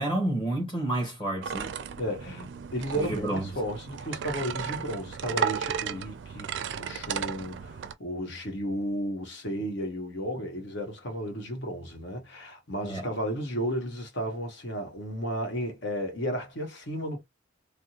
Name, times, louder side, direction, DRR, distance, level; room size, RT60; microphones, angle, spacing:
voice 1, 0.0-1.8 2.3-2.5 3.0-3.5 12.8-13.1, right 1 dB, 25° left, 1.3 m, -30 dB
sound 1, 1.4-7.9, right 7 dB, 70° right, 0.4 m, -34 dB
voice 2, 2.0-2.4 2.7-17.2, equal, 70° left, 1.2 m, -33 dB
3.4 x 2.1 x 2.8 m
head